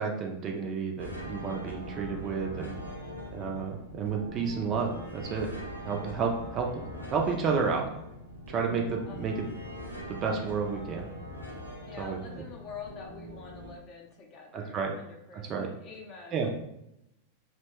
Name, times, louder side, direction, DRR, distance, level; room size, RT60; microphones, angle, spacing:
voice 1, 0.0-2.8 3.3-5.5 5.8-6.7 7.1-7.8 8.5-9.3 10.1-11.1 12.0-12.2 14.5-14.9 15.5-15.7 16.3-16.5, right 5 dB, 30° right, 1 dB, 0.4 m, -31 dB
sound 1, 1.0-13.7, equal, 90° right, 0.6 m, -42 dB
voice 2, 11.8-16.5, left 5 dB, 35° left, 1 dB, 0.6 m, -46 dB
2.8 x 2.1 x 2.9 m, 0.83 s
figure-of-eight pair, 90°, 0 cm